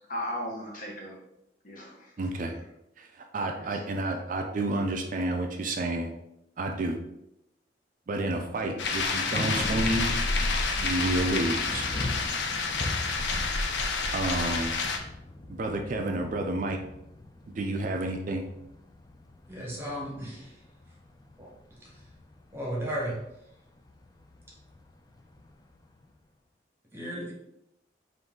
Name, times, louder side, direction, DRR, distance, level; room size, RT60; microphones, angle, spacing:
voice 1, 0.1-1.2 1.6-2.1 2.4-2.5 3.4-3.8, left 1 dB, 50° left, -2 dB, 1.0 m, -37 dB
voice 2, 2.2-2.5 3.0-3.1 3.3-6.1 6.6-7.0 8.1-10.1 10.8-11.9 14.1-14.8 15.5-16.8 17.4-18.5, right 2 dB, 45° right, 4 dB, 0.4 m, -30 dB
Thunder, 8.2-26.1, left 2 dB, 20° left, 0.3 m, -41 dB
sound 1, 8.8-15.0, left 4 dB, 80° left, 0.5 m, -29 dB
voice 3, 19.5-20.5 21.4-21.5 22.5-23.2 26.9-27.3, equal, 15° right, -4 dB, 1.0 m, -34 dB
3.9 x 2.6 x 3.6 m, 0.84 s
head